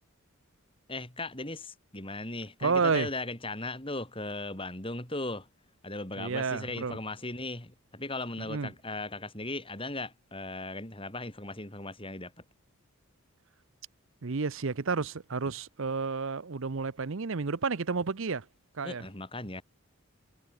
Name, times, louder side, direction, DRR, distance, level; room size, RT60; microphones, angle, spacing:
voice 1, 0.9-5.5 5.8-12.3 18.8-19.6, left 2 dB, 25° left, 4.3 m, -37 dB
voice 2, 2.6-3.1 6.2-7.0 8.4-8.7 14.2-18.4 18.7-19.0, right 4 dB, 60° right, 0.7 m, -30 dB
head